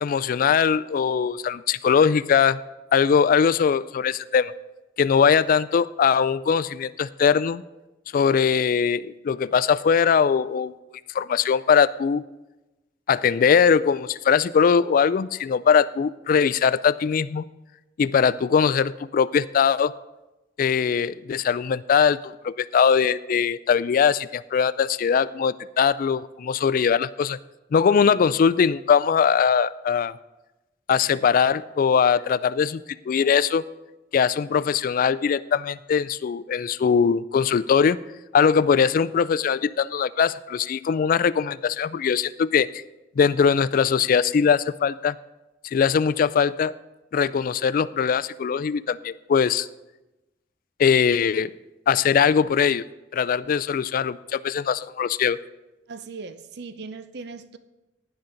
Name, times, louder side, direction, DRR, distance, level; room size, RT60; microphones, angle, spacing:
voice 1, 0.0-2.6 2.9-4.5 5.0-7.6 8.1-10.7 11.1-12.2 13.1-17.4 18.0-19.9 20.6-27.4 27.7-30.1 30.9-33.6 34.1-38.0 38.3-42.8 43.2-45.2 45.6-46.7 47.1-49.7 50.8-51.5 51.9-52.8 53.1-55.4, left 6 dB, 50° left, 16 dB, 0.3 m, -21 dB
voice 2, 55.9-57.6, right 4 dB, 65° right, 11 dB, 0.6 m, -38 dB
16.5 x 10.0 x 3.9 m, 1.0 s
head